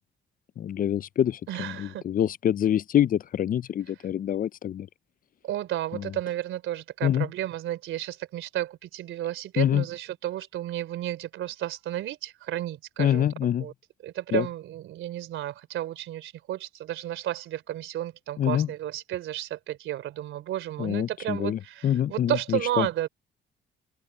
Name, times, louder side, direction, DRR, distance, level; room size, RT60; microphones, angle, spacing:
voice 1, 0.6-4.9 7.0-7.3 9.6-9.8 13.0-13.6 14.3-14.4 18.4-18.7 20.8-22.9, left 10 dB, 45° left, 0.4 m, -25 dB
voice 2, 1.5-2.0 5.4-13.3 13.6-13.7 14.0-23.1, right 13 dB, 85° right, 3.2 m, -32 dB
cardioid pair, 90°, 20 cm